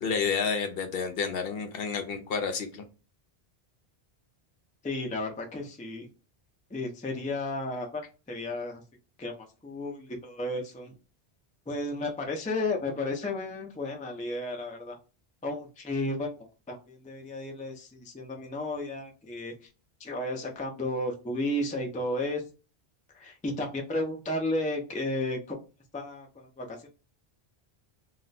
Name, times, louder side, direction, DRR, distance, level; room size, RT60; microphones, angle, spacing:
voice 1, 0.0-2.8, left 5 dB, 65° left, 7 dB, 0.8 m, -30 dB
voice 2, 4.8-6.1 6.7-8.0 8.3-8.8 9.2-9.3 9.6-11.0 11.7-15.0 15.4-16.3 16.7-19.5 20.0-22.4 23.1-25.6 25.9-26.9, left 2 dB, 10° left, 2 dB, 0.4 m, -33 dB
2.4 x 2.1 x 3.9 m, 0.32 s
omnidirectional pair, 1.1 m